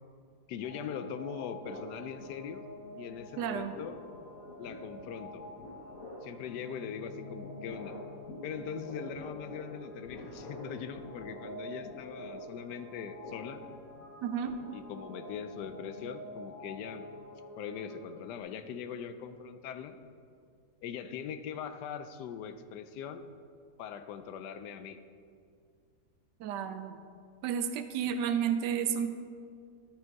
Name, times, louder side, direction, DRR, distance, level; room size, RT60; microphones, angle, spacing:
voice 1, 0.5-2.6 2.9-4.0 4.6-5.5 6.2-8.0 8.4-13.6 14.7-17.1 17.6-20.0 20.8-23.2 23.8-25.0, left 7 dB, 75° left, 10 dB, 1.2 m, -41 dB
sound 1, 0.6-18.4, left 1 dB, 10° right, 1.9 m, -48 dB
sound 2, 1.6-2.9 3.1-16.3, left 1 dB, 55° left, 1.4 m, -49 dB
voice 2, 3.4-3.7 14.2-14.6 26.4-27.0 27.4-29.1, right 8 dB, 80° right, 9 dB, 1.2 m, -31 dB
12.5 x 5.3 x 4.6 m, 2.3 s
omnidirectional pair, 1.9 m